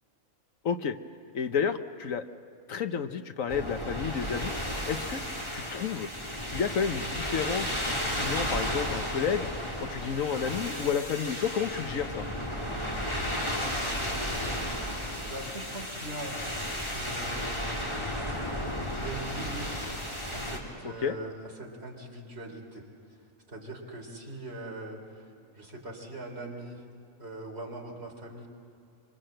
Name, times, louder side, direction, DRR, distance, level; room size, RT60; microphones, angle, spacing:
voice 1, 0.6-1.0 1.3-2.2 2.7-4.5 4.9-5.2 5.5-6.1 6.5-9.5 9.9-12.3 20.8-21.2, left 7 dB, 70° left, 9 dB, 1.3 m, -31 dB
sound 1, 3.5-20.6, equal, 20° left, 3.5 m, -33 dB
voice 2, 14.0-14.7 15.2-16.4 16.9-17.7 19.0-20.0 20.3-26.8 27.2-28.5, right 1 dB, 45° right, 1 dB, 3.9 m, -42 dB
26.5 x 25.0 x 7.8 m, 2.6 s
omnidirectional pair, 1.5 m